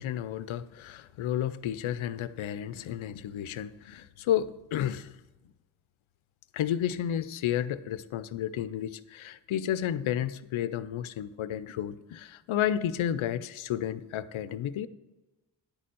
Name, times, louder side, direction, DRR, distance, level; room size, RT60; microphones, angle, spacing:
voice 1, 0.0-5.1 6.5-14.9, left 10 dB, 75° left, 15 dB, 0.6 m, -32 dB
10.5 x 4.3 x 7.6 m, 1.1 s
cardioid pair, 50°, 48 cm